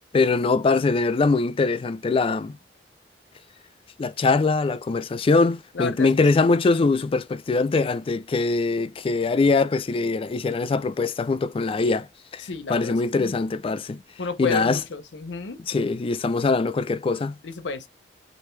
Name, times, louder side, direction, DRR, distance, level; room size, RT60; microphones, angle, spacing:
voice 1, 0.1-2.6 4.0-12.1 12.3-14.0 14.4-14.8 15.7-17.4, left 3 dB, 30° left, 0.3 m, -22 dB
voice 2, 5.7-6.1 6.4-6.5 12.4-13.4 14.2-15.6 17.4-17.9, left 4 dB, 85° left, 0.7 m, -31 dB
3.2 x 2.6 x 3.1 m
head